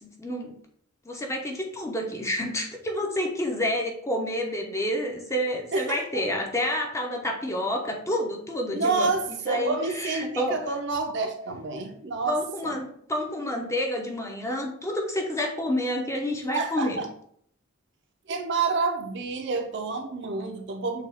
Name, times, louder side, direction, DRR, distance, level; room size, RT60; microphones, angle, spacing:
voice 1, 0.0-0.6 1.1-9.1 9.5-10.6 12.3-17.0, left 1 dB, 15° left, 1 dB, 0.7 m, -29 dB
voice 2, 5.7-6.0 8.7-12.8 16.5-17.1 18.3-21.1, right 4 dB, 60° right, 5 dB, 0.6 m, -28 dB
6.5 x 2.4 x 3.4 m, 0.65 s
head